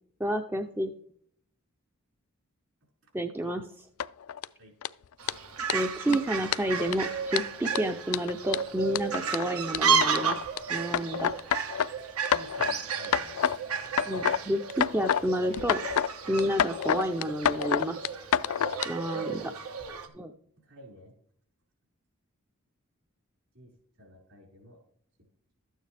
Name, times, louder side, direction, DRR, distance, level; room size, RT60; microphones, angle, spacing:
voice 1, 0.2-0.9 3.1-3.9 5.7-10.4 10.7-11.3 14.1-15.8 16.3-18.0 18.9-19.3 20.1-20.3, equal, 10° right, 6 dB, 0.4 m, -30 dB
sound 1, 4.0-4.4 4.8-4.9 5.3-5.4 5.7-5.8 6.1-6.2 6.5-6.9 7.3-10.6 10.9-11.9 12.2-12.7 13.0-13.6 13.9-14.4 14.7-15.2 15.5-16.1 16.4-18.9, left 9 dB, 80° left, 0.4 m, -28 dB
Fowl, 5.2-20.1, right 6 dB, 80° right, 1.4 m, -33 dB
voice 2, 11.9-13.5 18.7-18.8 19.1-19.5 20.1-20.2 20.6-21.1 23.5-24.8, equal, 65° right, -1 dB, 5.1 m, -51 dB
13.0 x 9.1 x 3.3 m, 0.63 s
head